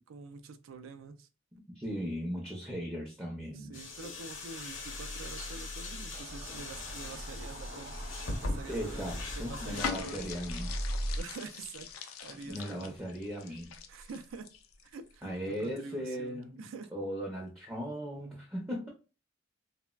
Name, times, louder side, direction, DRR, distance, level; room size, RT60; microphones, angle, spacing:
voice 1, 0.1-1.3 3.5-9.2 9.5-10.3 11.2-13.0 13.9-14.5 14.8-16.9, right 4 dB, 70° right, 0.4 m, -46 dB
voice 2, 1.8-3.8 8.7-10.7 12.4-13.7 15.2-18.9, equal, 10° right, 0.5 m, -38 dB
sound 1, 3.7-10.6, left 2 dB, 65° left, 0.8 m, -41 dB
sound 2, 6.1-11.2, right 1 dB, 55° right, 0.8 m, -40 dB
sound 3, 9.7-15.1 15.5-15.7, left 6 dB, 85° left, 0.4 m, -42 dB
3.2 x 2.0 x 2.2 m
head